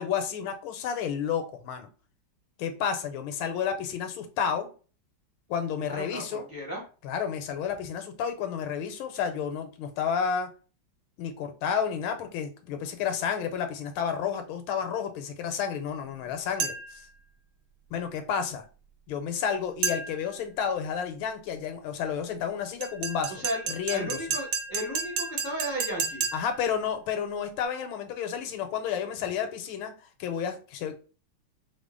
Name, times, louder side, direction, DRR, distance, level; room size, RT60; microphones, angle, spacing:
voice 1, 0.0-1.9 2.6-4.7 5.5-6.5 7.0-10.5 11.2-17.1 17.9-18.7 19.1-23.4 23.7-24.2 26.3-31.0, left 7 dB, 80° left, 7 dB, 1.4 m, -31 dB
voice 2, 5.8-6.8 23.3-26.3, right 1 dB, 25° left, -5 dB, 0.4 m, -35 dB
sound 1, 16.6-17.0 19.8-20.3 22.8-26.6, right 5 dB, 75° right, 1.4 m, -32 dB
3.6 x 2.0 x 3.6 m, 0.36 s
omnidirectional pair, 2.3 m